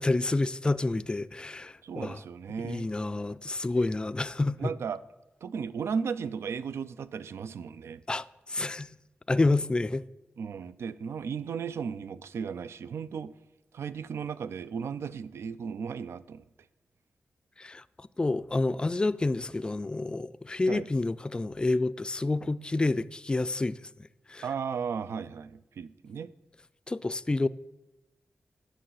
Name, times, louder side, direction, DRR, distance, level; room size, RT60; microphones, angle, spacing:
voice 1, 0.0-2.2 2.6-4.7 8.1-8.9 9.3-10.0 17.6-23.8 24.3-24.4 26.9-27.5, left 2 dB, 20° left, 0.3 m, -29 dB
voice 2, 1.8-2.9 4.6-5.0 5.4-8.0 10.4-13.3 13.7-16.4 20.7-20.9 24.4-26.3, right 6 dB, 80° right, 0.4 m, -35 dB
10.0 x 6.8 x 5.6 m
cardioid pair, 80°, 4 cm